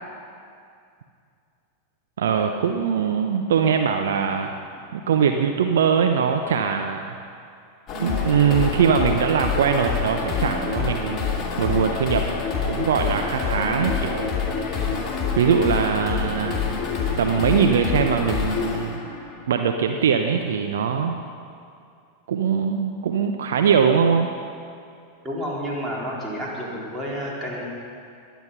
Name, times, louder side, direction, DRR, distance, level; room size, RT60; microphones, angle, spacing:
voice 1, 2.2-4.5 4.9-7.2 8.0-12.3 12.6-15.0 15.4-16.6 17.2-19.0 19.5-21.2 22.3-24.3, right 7 dB, 60° right, 5 dB, 0.7 m, -22 dB
sound 1, 7.9-19.9, left 5 dB, 25° left, 2.8 m, -27 dB
voice 2, 25.2-27.6, equal, 15° right, -5 dB, 4.0 m, -30 dB
21.5 x 9.4 x 5.7 m, 2.4 s
figure-of-eight pair, 90°, 0 cm